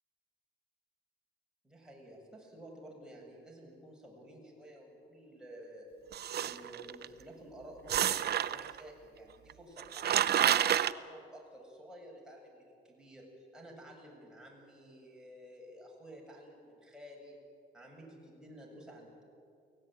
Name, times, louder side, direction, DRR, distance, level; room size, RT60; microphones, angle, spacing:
voice 1, 1.6-5.9 6.4-17.4 17.7-19.2, equal, 5° right, -2 dB, 7.9 m, -52 dB
sound 1, 6.1-7.0 7.9-8.8 9.5-9.6 9.8-10.9, right 10 dB, 55° right, 0.8 m, -29 dB
23.5 x 17.5 x 9.4 m, 2.4 s
cardioid pair, 80°, 20 cm